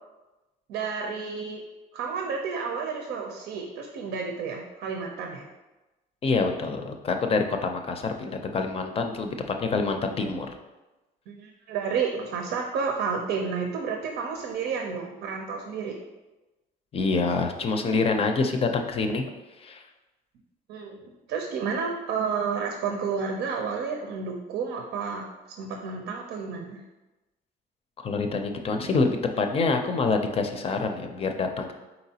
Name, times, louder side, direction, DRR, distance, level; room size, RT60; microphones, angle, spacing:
voice 1, 0.7-1.6 1.9-5.5 11.3-16.0 20.7-25.2 25.6-26.8, right 5 dB, 85° right, 2 dB, 0.6 m, -31 dB
voice 2, 6.2-10.5 16.9-19.3 19.6-19.8 28.0-31.7, left 4 dB, 35° left, 5 dB, 0.5 m, -26 dB
4.3 x 4.0 x 2.8 m, 1.1 s
cardioid pair, 110°, 17 cm